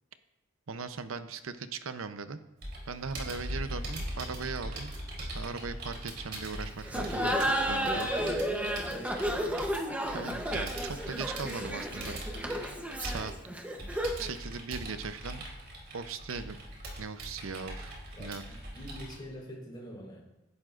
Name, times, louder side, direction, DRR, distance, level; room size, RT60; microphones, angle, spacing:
voice 1, 0.7-2.4 2.9-8.1 8.5-8.6 10.1-12.2 13.0-13.3 14.2-15.4 15.9-16.6 17.0-18.4, right 5 dB, 80° right, 10 dB, 0.7 m, -39 dB
Computer keyboard, 2.6-19.2, right 1 dB, 55° right, 3.4 m, -41 dB
Laughter, 6.9-14.3, equal, 5° right, 0.9 m, -32 dB
voice 2, 8.6-9.8 18.1-20.2, equal, 20° left, -3 dB, 4.3 m, -46 dB
17.0 x 11.5 x 2.5 m, 0.94 s
head